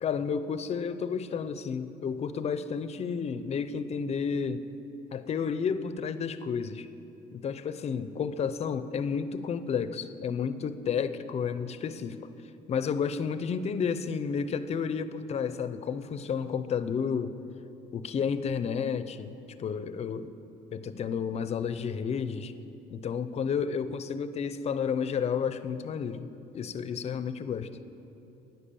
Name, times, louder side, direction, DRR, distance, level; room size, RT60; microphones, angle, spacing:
voice 1, 0.0-4.6 5.1-6.9 7.3-12.2 12.7-17.3 17.9-19.3 19.6-20.3 20.7-22.5 22.9-27.7, left 6 dB, 40° left, 12 dB, 0.5 m, -31 dB
10.0 x 9.4 x 6.9 m, 3.0 s
cardioid pair, 110°, 17 cm